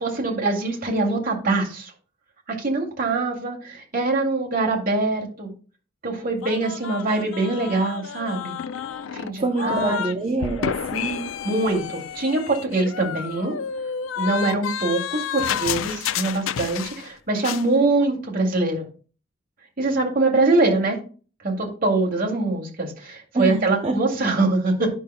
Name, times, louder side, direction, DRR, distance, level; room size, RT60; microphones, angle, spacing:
voice 1, 0.0-1.9 2.5-5.5 6.0-8.6 9.1-10.0 11.4-13.5 14.2-18.9 19.8-21.0 21.4-24.9, right 2 dB, 45° right, -1 dB, 2.3 m, -23 dB
sound 1, 6.4-10.2 10.4-17.1 17.4-17.7, left 8 dB, 80° left, 0.4 m, -30 dB
voice 2, 9.4-11.3 23.3-24.0, right 3 dB, 30° right, 3 dB, 0.7 m, -26 dB
10.5 x 5.7 x 2.2 m, 0.38 s
head